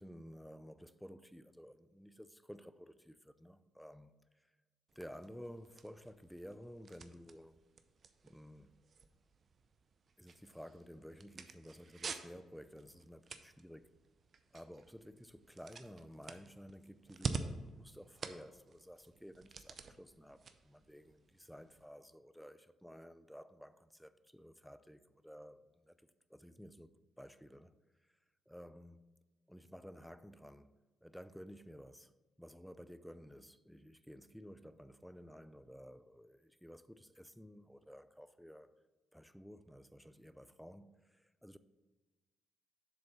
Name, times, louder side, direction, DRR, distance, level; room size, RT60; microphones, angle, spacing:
voice 1, 0.0-4.5 5.0-7.6 8.2-8.8 10.2-13.9 14.5-25.9 26.3-27.7 28.0-28.1 28.5-29.1 29.5-30.7 31.0-38.7 39.1-41.6, equal, ahead, 0.4 m, -54 dB
sound 1, 4.9-21.9, right 4 dB, 50° right, 0.5 m, -49 dB
7.0 x 3.9 x 5.8 m
supercardioid pair, 55°, 0 cm